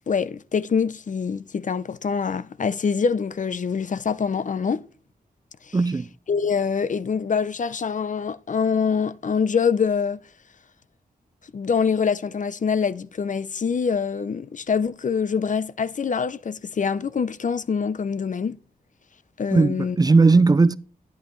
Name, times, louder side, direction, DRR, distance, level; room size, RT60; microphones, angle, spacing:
voice 1, 0.1-4.8 5.7-5.8 6.3-10.2 11.5-18.6 19.4-20.0, left 6 dB, 50° left, 0.6 m, -25 dB
voice 2, 5.7-6.1 19.5-20.8, right 3 dB, 25° right, 0.4 m, -17 dB
11.0 x 10.5 x 3.1 m
wide cardioid pair, 90°, 16 cm